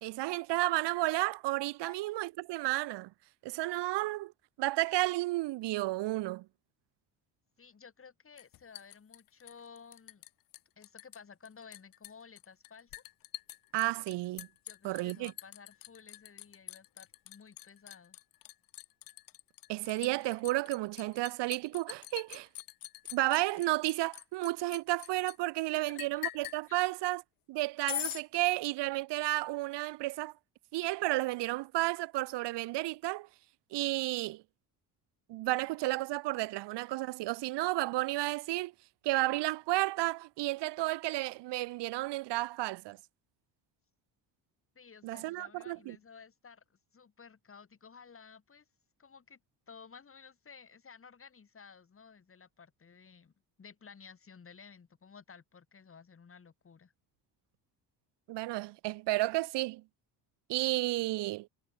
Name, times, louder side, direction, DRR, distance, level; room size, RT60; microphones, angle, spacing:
voice 1, 0.0-3.1 3.4-4.3 4.6-6.4 13.7-14.5 14.8-15.3 19.7-22.5 23.1-27.2 27.5-30.3 30.7-33.3 33.7-34.4 35.3-38.7 39.0-43.0 45.0-46.0 58.3-59.8 60.5-61.5, right 19 dB, 75° right, 0.9 m, -32 dB
voice 2, 7.6-10.2 10.8-13.0 14.6-18.2 25.7-26.0 26.7-26.9 44.8-48.7 49.0-49.4 49.7-53.3 53.6-56.9, left 6 dB, 30° left, 7.0 m, -55 dB
Liquid, 8.4-10.3 10.5-11.2 11.4-25.4 26.0-26.6 27.9-28.2, left 16 dB, 55° left, 0.6 m, -43 dB
cardioid pair, 120°, 42 cm